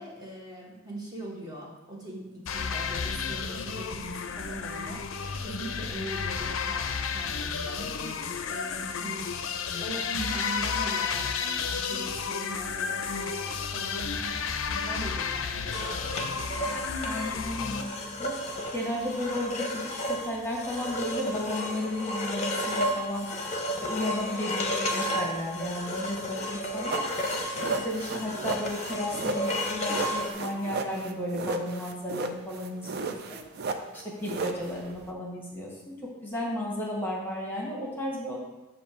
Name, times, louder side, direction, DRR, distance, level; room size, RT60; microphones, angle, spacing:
voice 1, 0.0-9.3 9.8-16.7, right 1 dB, 20° right, -4 dB, 1.1 m, -41 dB
sound 1, 2.5-17.8, left 6 dB, 75° left, 0.5 m, -32 dB
sound 2, 15.7-30.3, equal, 35° left, 0.7 m, -33 dB
voice 2, 17.0-17.9 18.2-18.4 18.7-23.3 23.8-27.0 27.6-33.4 33.9-35.9 36.2-38.4, left 1 dB, 10° left, -3 dB, 1.2 m, -33 dB
sound 3, 26.9-35.1, right 3 dB, 55° right, 0.5 m, -34 dB
7.1 x 2.7 x 5.7 m, 1.1 s
head